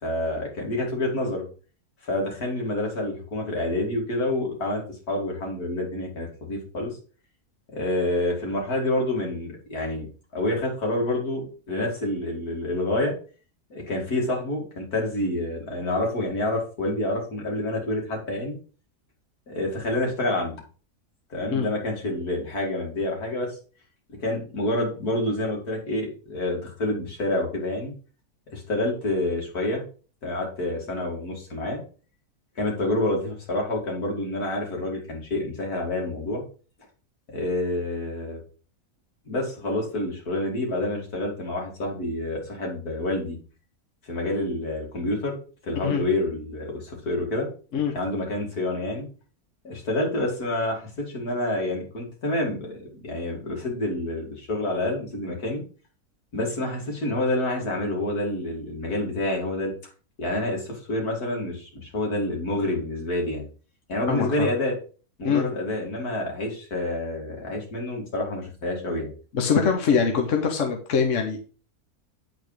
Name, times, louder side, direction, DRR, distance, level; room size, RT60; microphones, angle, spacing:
voice 1, 0.0-1.4 2.0-7.0 7.7-10.1 10.3-13.1 13.7-18.6 19.5-20.5 21.3-23.6 24.2-27.9 28.5-29.8 30.2-31.8 32.6-36.4 37.3-38.4 39.3-43.4 44.0-45.4 45.6-47.5 47.9-49.1 49.6-55.6 56.3-59.7 60.2-63.4 63.9-64.7 65.2-69.1, left 1 dB, 80° left, -1 dB, 2.9 m, -28 dB
voice 2, 64.1-64.5 65.2-65.5 69.3-71.4, left 6 dB, 60° left, 2 dB, 1.2 m, -23 dB
8.4 x 4.2 x 4.9 m, 0.38 s
omnidirectional pair, 1.6 m